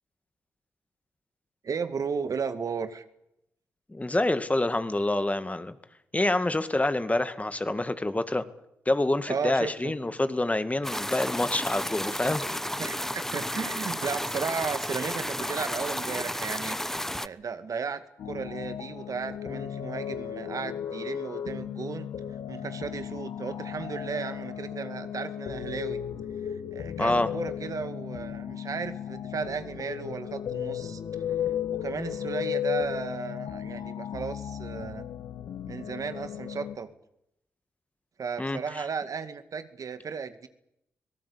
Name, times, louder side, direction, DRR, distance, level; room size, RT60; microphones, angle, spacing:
voice 1, 1.6-3.0 9.3-9.9 12.8-16.8 17.2-22.1 22.5-26.0 26.5-31.0 31.7-35.1 35.7-36.9 38.2-40.5, right 5 dB, 60° right, 10 dB, 2.0 m, -35 dB
voice 2, 3.9-5.8 6.1-8.4 8.9-12.4 27.0-27.3 38.4-38.6, left 2 dB, 20° left, 11 dB, 2.2 m, -27 dB
sound 1, 10.8-17.3, left 1 dB, 5° left, 1.0 m, -32 dB
sound 2, 18.2-36.8, left 9 dB, 75° left, 1.5 m, -35 dB
25.0 x 18.5 x 8.6 m, 0.81 s
supercardioid pair, 45°, 7 cm